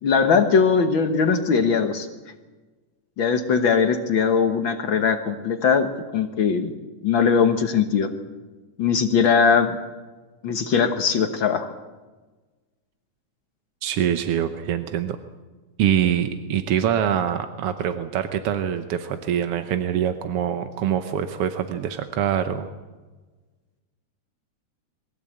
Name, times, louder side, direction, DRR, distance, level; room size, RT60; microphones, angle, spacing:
voice 1, 0.0-2.1 3.2-6.7 7.0-8.1 8.8-9.8 10.4-11.7, left 6 dB, 55° left, 7 dB, 1.4 m, -20 dB
voice 2, 13.8-15.2 15.8-22.7, right 9 dB, 65° right, 8 dB, 1.5 m, -24 dB
23.0 x 15.0 x 8.7 m, 1.3 s
omnidirectional pair, 3.5 m